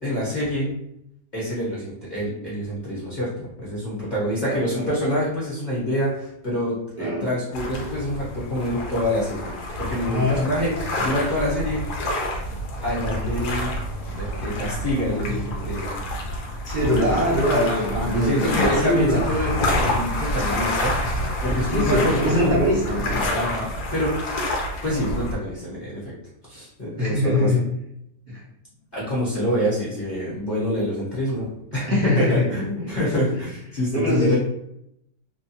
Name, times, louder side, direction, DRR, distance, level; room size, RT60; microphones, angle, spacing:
voice 1, 0.0-0.7 1.3-11.9 12.8-13.7 14.1-16.0 17.7-22.6 23.3-24.4 24.8-26.1 26.5-27.6 28.9-34.4, equal, 35° left, -7 dB, 0.9 m, -26 dB
voice 2, 4.4-4.9 7.0-7.3 10.0-10.4 14.0-14.1 15.3-15.4 16.6-19.2 21.7-23.2 27.0-27.7 28.3-28.4 31.9-32.4 32.9-33.0 33.9-34.4, left 1 dB, 45° right, -9 dB, 0.6 m, -23 dB
sound 1, 7.5-25.4, left 1 dB, 75° left, 1.2 m, -28 dB
3.0 x 2.2 x 2.8 m, 0.77 s
omnidirectional pair, 1.7 m